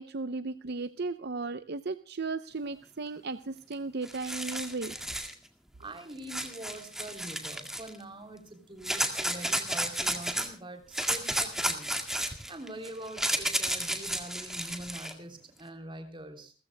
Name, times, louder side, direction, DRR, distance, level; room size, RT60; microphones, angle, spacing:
voice 1, 0.0-5.0, right 3 dB, 50° right, 13 dB, 0.6 m, -35 dB
sound 1, 3.7-3.8 4.0-5.3 6.3-7.9 8.8-10.5 10.9-15.1, right 1 dB, ahead, 1.9 m, -32 dB
voice 2, 5.8-11.9 12.5-16.5, right 1 dB, 25° right, 6 dB, 3.3 m, -44 dB
29.0 x 14.5 x 2.2 m, 0.36 s
head